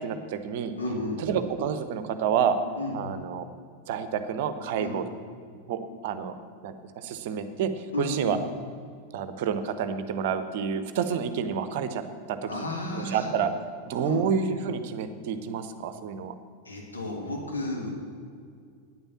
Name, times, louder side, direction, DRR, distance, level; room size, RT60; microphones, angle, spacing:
voice 1, 0.0-0.7 1.2-2.6 2.9-3.5 3.9-5.0 5.7-6.3 6.6-8.4 9.1-12.0 12.3-13.5 13.9-16.3, right 7 dB, 50° right, 10 dB, 0.8 m, -29 dB
voice 2, 0.8-1.2 2.8-3.0 4.7-4.9 7.9-8.3 12.5-13.3 14.0-14.2 16.6-17.9, left 2 dB, 75° left, -1 dB, 2.4 m, -32 dB
9.4 x 9.0 x 7.2 m, 2.2 s
figure-of-eight pair, 90°, 0 cm